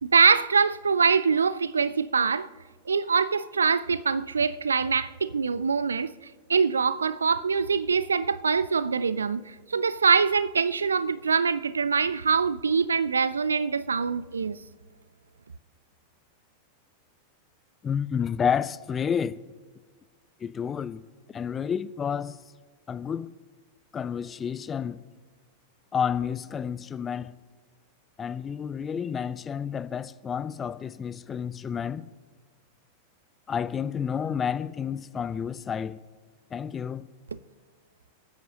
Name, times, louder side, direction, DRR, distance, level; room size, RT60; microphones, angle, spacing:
voice 1, 0.0-2.5 2.9-6.1 6.5-14.6, right 5 dB, 75° right, 0.4 m, -24 dB
voice 2, 17.8-19.4 20.4-21.0 21.3-22.4 22.9-23.3 23.9-25.0 25.9-27.3 28.2-32.1 33.5-36.0 36.5-37.1, left 7 dB, 20° left, 0.4 m, -30 dB
27.5 x 9.3 x 2.8 m
figure-of-eight pair, 90°, 0 cm